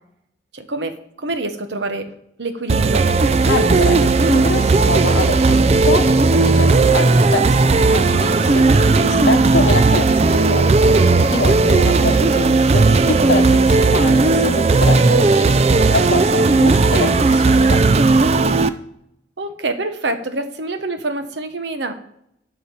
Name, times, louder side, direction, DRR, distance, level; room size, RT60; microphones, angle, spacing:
voice 1, 0.5-2.1 2.4-3.1 3.5-4.7 19.4-21.9, right 2 dB, 80° right, 8 dB, 1.1 m, -27 dB
sound 1, 2.7-18.7, right 3 dB, 35° right, 0.4 m, -15 dB
voice 2, 3.5-6.1 6.4-10.7 11.3-15.5 15.9-17.8, left 3 dB, 80° left, 9 dB, 0.9 m, -25 dB
11.5 x 5.5 x 5.5 m, 0.76 s
head